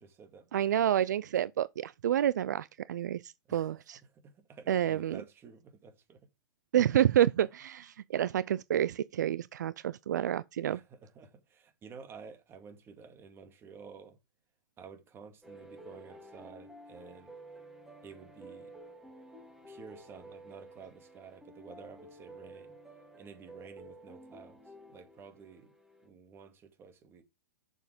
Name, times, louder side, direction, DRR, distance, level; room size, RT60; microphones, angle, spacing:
voice 1, 0.0-0.8 3.5-3.8 4.1-6.3 7.2-7.3 10.7-14.2 14.8-17.4 18.0-18.7 19.7-22.8 23.2-24.6 24.9-25.7 26.0-27.2, right 5 dB, 25° right, 2.2 m, -51 dB
voice 2, 0.5-4.0 4.7-5.2 6.7-10.8, right 11 dB, 70° right, 0.4 m, -29 dB
sound 1, 15.4-26.1, right 1 dB, 5° right, 2.6 m, -52 dB
7.2 x 6.9 x 5.1 m
hypercardioid pair, 120°, 10 cm